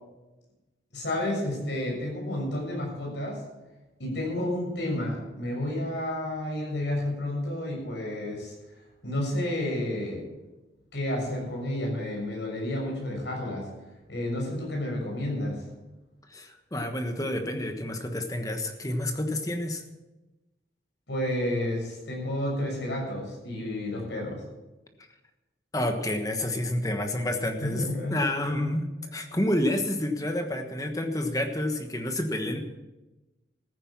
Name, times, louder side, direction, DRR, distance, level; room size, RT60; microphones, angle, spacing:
voice 1, 0.9-3.4 4.0-8.5 9.0-10.2 10.9-13.7 14.1-15.6 21.1-24.4 27.6-28.2 28.4-28.5, left 1 dB, 75° left, 0 dB, 6.7 m, -31 dB
voice 2, 16.3-19.8 25.7-27.8 28.1-32.6, left 1 dB, 20° left, 5 dB, 1.3 m, -29 dB
14.5 x 9.9 x 7.3 m, 1.1 s
head